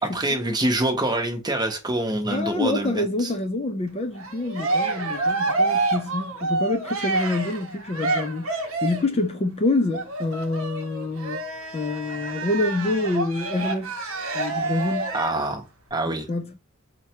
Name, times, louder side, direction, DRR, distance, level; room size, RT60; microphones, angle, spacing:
voice 1, 0.0-3.3 15.1-15.6 15.9-16.3, right 1 dB, 20° right, 0.7 m, -25 dB
voice 2, 2.3-11.4 11.7-14.0 14.3-15.1 16.1-16.6, left 2 dB, 25° left, 0.3 m, -27 dB
Cheering, 4.1-9.2 9.9-15.5, right 3 dB, 65° right, 0.7 m, -28 dB
4.5 x 2.2 x 2.8 m
head